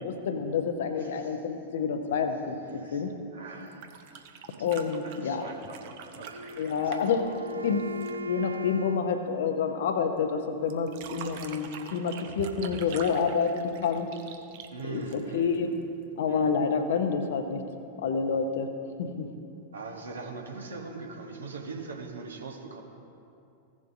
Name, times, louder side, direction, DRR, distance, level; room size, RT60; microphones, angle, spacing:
voice 1, 0.0-3.1 4.6-5.4 6.6-7.8 8.2-14.1 14.9-15.7 16.2-17.6 18.0-18.7 19.0-19.3, left 6 dB, 60° left, 7 dB, 0.8 m, -28 dB
voice 2, 0.9-1.5 2.6-4.3 4.6-4.7 5.0-7.1 14.7-15.9 16.3-16.8 19.7-22.8, right 4 dB, 70° right, 1 dB, 1.1 m, -42 dB
sound 1, 3.6-8.3 10.7-15.6 17.0-17.1, right 7 dB, 50° right, 0.7 m, -45 dB
Wind instrument woodwind instrument, 6.3-10.4, equal, 85° right, 0.3 m, -39 dB
16.0 x 7.3 x 2.7 m, 2.6 s
figure-of-eight pair, 90°, 0 cm